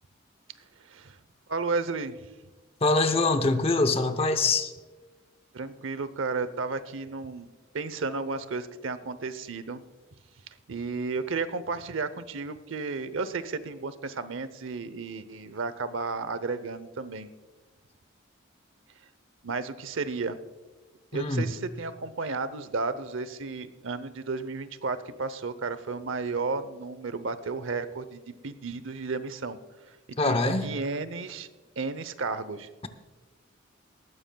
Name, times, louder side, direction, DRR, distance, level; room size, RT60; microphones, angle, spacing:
voice 1, 1.5-2.3 5.5-7.5 7.7-9.8 10.7-17.3 19.4-20.4 21.1-29.6 30.1-31.5 31.8-32.9, right 4 dB, 70° right, 14 dB, 0.7 m, -33 dB
voice 2, 2.8-4.7 21.1-21.5 30.2-30.7, left 3 dB, 30° left, 9 dB, 0.7 m, -24 dB
19.0 x 14.5 x 2.3 m, 1.3 s
head